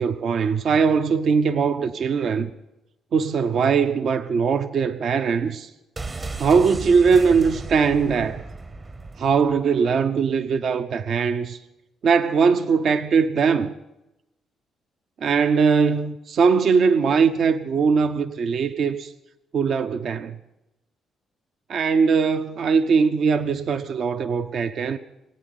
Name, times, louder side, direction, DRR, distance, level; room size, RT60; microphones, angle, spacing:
voice 1, 0.0-2.5 3.1-5.7 6.4-8.4 9.2-11.6 12.0-13.7 15.2-19.1 19.5-20.4 21.7-25.0, right 5 dB, 60° right, 0.7 m, -20 dB
sound 1, 6.0-9.7 10.0-10.1, right 3 dB, 30° right, 0.9 m, -35 dB
19.5 x 9.1 x 8.0 m
cardioid pair, 90°, 0 cm